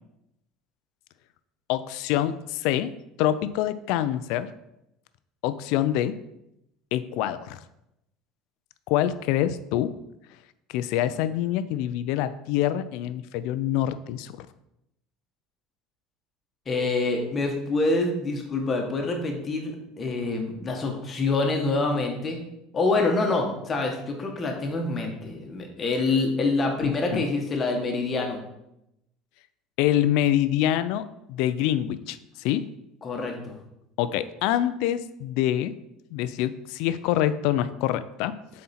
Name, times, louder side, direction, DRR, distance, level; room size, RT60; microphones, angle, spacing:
voice 1, 1.7-2.9 3.2-4.5 5.4-6.2 6.9-7.6 8.9-9.9 10.7-14.5 26.8-27.2 29.8-32.6 34.0-35.7 36.1-38.6, left 12 dB, 70° left, 13 dB, 0.4 m, -26 dB
voice 2, 16.7-22.4 22.7-28.4 33.0-33.5, left 3 dB, 25° left, 2 dB, 1.2 m, -26 dB
7.5 x 4.3 x 4.2 m, 0.84 s
cardioid pair, 155°, 0 cm